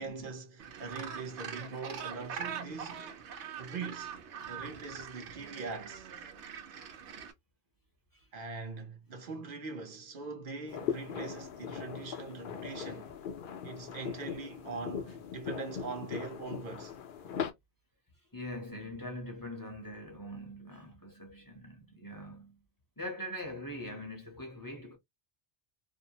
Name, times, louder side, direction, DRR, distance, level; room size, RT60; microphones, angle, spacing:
voice 1, 0.0-3.2 3.6-6.1 8.3-13.2 13.6-17.0, right 4 dB, 55° right, 0.9 m, -42 dB
Gull seagull, 0.6-7.3, right 7 dB, 90° right, 0.9 m, -43 dB
sound 1, 10.7-17.5, left 8 dB, 60° left, 0.7 m, -39 dB
voice 2, 18.3-22.6 23.0-25.0, left 1 dB, 20° left, 0.7 m, -43 dB
2.5 x 2.0 x 2.7 m
omnidirectional pair, 1.1 m